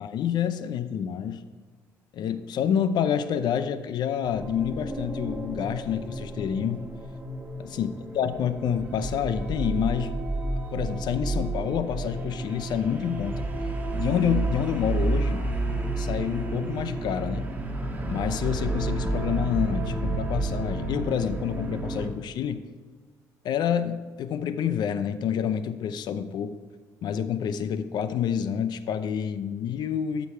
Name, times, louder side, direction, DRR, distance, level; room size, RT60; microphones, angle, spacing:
voice 1, 0.0-1.4 2.1-6.9 7.6-10.1 10.7-13.5 13.9-15.5 16.0-17.5 18.1-22.7 23.4-26.6 27.0-30.3, left 8 dB, 65° left, 12 dB, 0.6 m, -28 dB
sound 1, 4.2-22.1, right 2 dB, 20° right, 1.6 m, -30 dB
13.0 x 5.2 x 4.5 m, 1.5 s
supercardioid pair, 70°, 8 cm